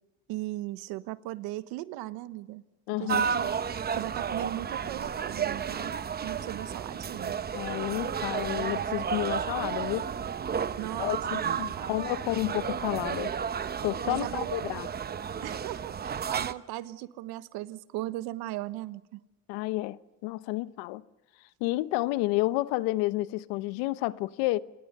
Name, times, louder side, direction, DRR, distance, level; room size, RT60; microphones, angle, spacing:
voice 1, 0.3-2.6 3.0-7.4 10.8-12.0 14.1-14.5 15.4-19.2, right 16 dB, 75° right, 1.3 m, -38 dB
voice 2, 2.9-3.3 7.5-10.1 11.0-13.3 13.8-14.9 19.5-21.0 21.6-24.6, left 19 dB, 85° left, 1.0 m, -30 dB
sound 1, 3.1-16.5, right 7 dB, 25° right, 0.9 m, -32 dB
28.0 x 21.5 x 6.7 m
cardioid pair, 115°, 37 cm